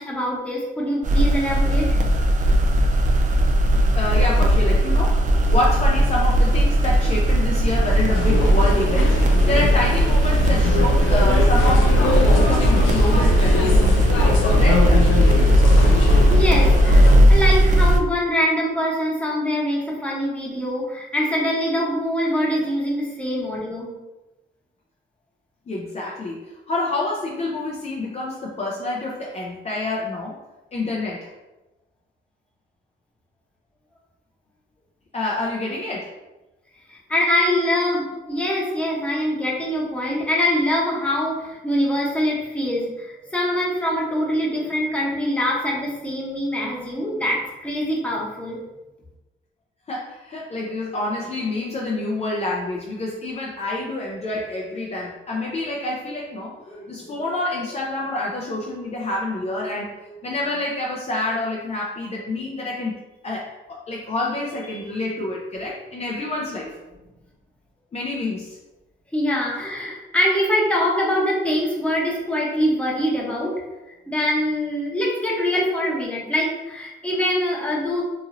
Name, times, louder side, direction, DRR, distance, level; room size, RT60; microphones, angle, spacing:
voice 1, 0.0-2.0 15.4-15.6 16.3-23.9 37.1-48.6 69.1-73.6 74.1-78.0, equal, 5° left, -4 dB, 0.9 m, -24 dB
sound 1, 1.0-18.0, equal, 40° right, 0.4 m, -17 dB
voice 2, 3.9-11.9 12.3-13.8 14.5-15.0 25.7-30.4 30.7-31.3 35.1-36.1 49.9-62.9 63.2-63.4 63.7-66.7 67.9-68.6, left 2 dB, 35° left, -3 dB, 0.5 m, -27 dB
sound 2, 8.1-17.2, left 4 dB, 80° left, 0.5 m, -25 dB
2.9 x 2.6 x 2.6 m, 1.1 s
cardioid pair, 90°, 20 cm